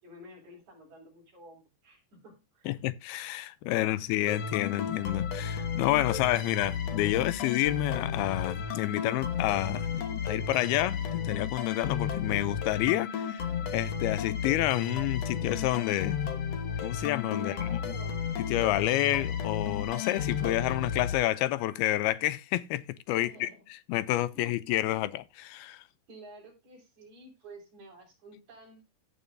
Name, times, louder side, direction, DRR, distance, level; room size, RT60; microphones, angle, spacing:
voice 1, 0.0-2.7 3.6-4.0 17.4-18.3 23.2-23.6 24.3-24.5 26.1-28.8, right 1 dB, 50° right, 6.1 m, -51 dB
voice 2, 2.7-13.5 13.7-16.2 16.8-18.0 18.4-23.5 23.9-25.8, left 16 dB, 90° left, 2.6 m, -29 dB
sound 1, 4.3-21.8, left 7 dB, 60° left, 1.9 m, -33 dB
16.0 x 7.3 x 2.7 m
omnidirectional pair, 4.3 m